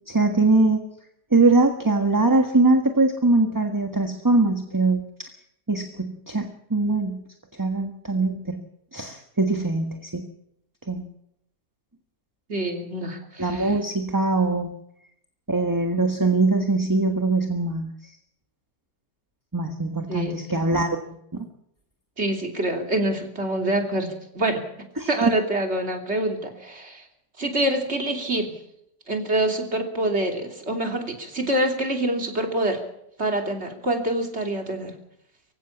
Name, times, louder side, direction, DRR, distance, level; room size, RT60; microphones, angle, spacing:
voice 1, 0.1-0.8 1.3-5.3 5.7-7.2 7.6-8.6 8.9-10.2 10.9-11.0 13.4-14.7 15.5-17.9 19.5-20.9 21.3-21.4 25.0-25.1, right 3 dB, 10° right, 5 dB, 1.3 m, -22 dB
voice 2, 12.5-13.7 20.1-20.5 22.2-24.6 25.1-27.0 27.4-28.5 29.1-32.8 33.2-34.9, right 1 dB, 40° right, 3 dB, 3.2 m, -26 dB
24.0 x 16.0 x 7.3 m, 0.77 s
omnidirectional pair, 1.8 m